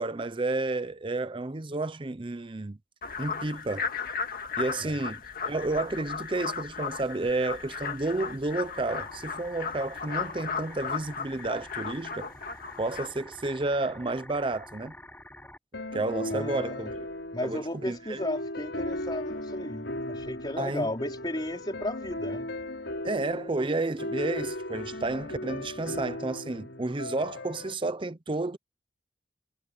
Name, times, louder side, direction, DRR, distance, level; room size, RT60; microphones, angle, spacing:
voice 1, 0.0-2.8 3.2-3.9 4.6-12.3 12.8-14.9 15.9-17.0 17.4-18.2 20.6-20.9 23.0-28.6, right 2 dB, 30° right, 0.7 m, -31 dB
sound 1, 3.0-13.1, left 5 dB, 55° left, 2.1 m, -36 dB
sound 2, 8.8-15.6, left 1 dB, 10° left, 5.8 m, -48 dB
sound 3, 15.7-27.7, left 1 dB, 85° left, 5.8 m, -37 dB
voice 2, 16.3-16.9 17.3-22.5, left 1 dB, 25° left, 3.7 m, -34 dB
head